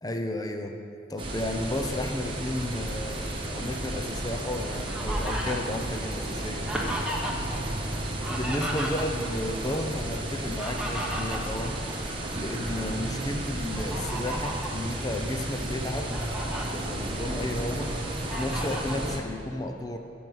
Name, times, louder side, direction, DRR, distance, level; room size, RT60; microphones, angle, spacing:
voice 1, 0.0-0.8 1.1-6.7 7.1-7.2 8.3-11.8 12.3-16.1 16.7-17.9 18.2-20.0, left 1 dB, 20° left, 5 dB, 0.7 m, -33 dB
sound 1, 1.2-19.2, right 1 dB, 30° right, 1.3 m, -33 dB
Fowl, 4.3-7.6 7.9-9.4 10.3-12.4 12.9-13.1 13.7-14.8 15.4-15.5 15.9-16.6 17.2-17.9 18.3-19.0, equal, 5° right, 1.2 m, -35 dB
14.0 x 5.4 x 8.0 m, 2.6 s
head